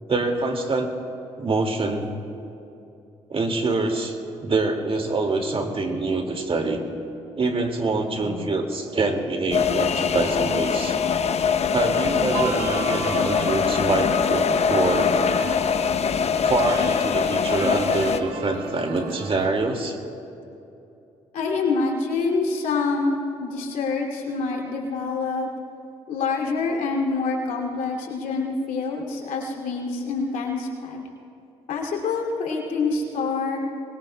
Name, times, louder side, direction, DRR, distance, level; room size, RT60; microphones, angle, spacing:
voice 1, 0.1-0.9 1.4-2.1 3.3-4.2 4.4-6.8 7.4-11.0 11.7-15.1 16.4-20.0, right 3 dB, 45° right, 4 dB, 2.1 m, -25 dB
sound 1, 9.5-18.2, left 6 dB, 50° left, 0.7 m, -23 dB
sound 2, 12.3-15.9 16.2-19.5, right 5 dB, 90° right, 1.0 m, -34 dB
voice 2, 21.3-25.5 26.1-31.0 31.7-33.6, left 4 dB, 75° left, -1 dB, 2.5 m, -26 dB
23.0 x 21.0 x 2.2 m, 2.8 s
hypercardioid pair, 50°, 14 cm